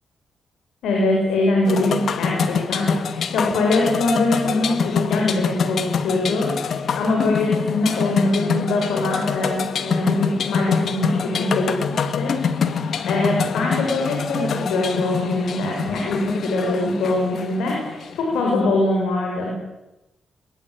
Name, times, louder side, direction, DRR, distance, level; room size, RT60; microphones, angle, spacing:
voice 1, 0.8-19.5, left 2 dB, 85° left, -1 dB, 7.5 m, -23 dB
sound 1, 1.6-18.5, left 6 dB, 70° left, 2.0 m, -25 dB
23.5 x 22.5 x 9.0 m, 0.96 s
supercardioid pair, 55°, 0 cm